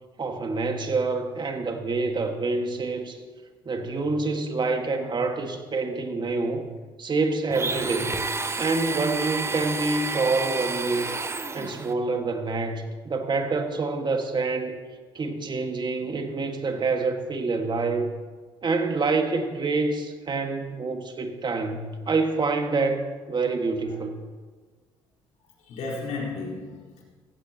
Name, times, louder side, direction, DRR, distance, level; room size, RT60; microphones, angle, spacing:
voice 1, 0.2-3.2 3.7-6.7 7.0-8.2 8.5-11.1 11.5-14.7 15.1-18.1 18.6-24.2, right 3 dB, 40° right, 5 dB, 1.8 m, -27 dB
Domestic sounds home sounds, 7.5-11.9, right 3 dB, 20° right, 0.9 m, -30 dB
voice 2, 25.6-27.0, left 3 dB, 70° left, -4 dB, 4.4 m, -35 dB
15.5 x 15.5 x 3.0 m, 1.5 s
supercardioid pair, 65°, 12 cm